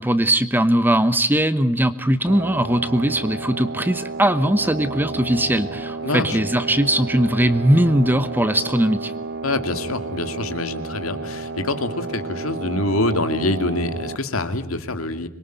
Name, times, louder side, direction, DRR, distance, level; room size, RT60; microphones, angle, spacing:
voice 1, 0.0-9.1, right 1 dB, 10° right, 11 dB, 1.0 m, -20 dB
sound 1, 2.3-14.2, right 3 dB, 55° right, 1.4 m, -31 dB
voice 2, 6.0-6.4 9.4-15.3, left 2 dB, 90° left, 8 dB, 2.4 m, -25 dB
25.5 x 22.5 x 9.2 m, 0.75 s
head